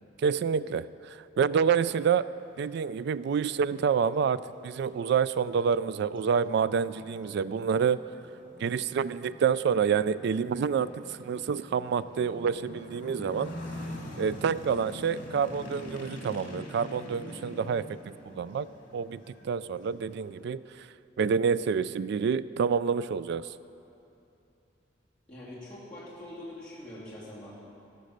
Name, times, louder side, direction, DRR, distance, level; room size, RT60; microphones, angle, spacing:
voice 1, 0.2-2.3 2.6-8.0 8.6-13.5 14.2-18.0 18.3-20.9 21.2-23.5, right 6 dB, 65° right, 17 dB, 0.3 m, -28 dB
sound 1, 3.4-3.5 4.0-20.5, left 1 dB, 50° left, 2.3 m, -45 dB
voice 2, 25.3-27.5, left 1 dB, 5° left, -10 dB, 2.7 m, -44 dB
18.0 x 6.3 x 6.6 m, 2.8 s
head